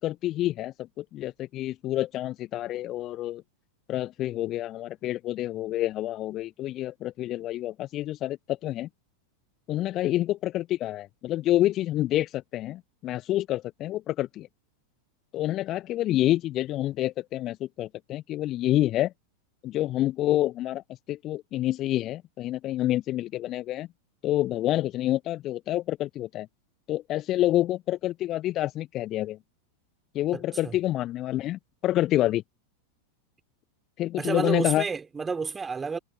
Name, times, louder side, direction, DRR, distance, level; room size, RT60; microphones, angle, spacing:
voice 1, 0.0-3.4 3.9-8.9 9.7-14.5 15.3-19.1 19.6-20.8 21.1-23.9 24.2-26.5 26.9-29.4 30.1-32.4 34.0-34.8, left 14 dB, 35° left, 1.4 m, -28 dB
voice 2, 30.3-30.8 34.2-36.0, right 5 dB, 15° right, 5.3 m, -30 dB
figure-of-eight pair, 90°, 0 cm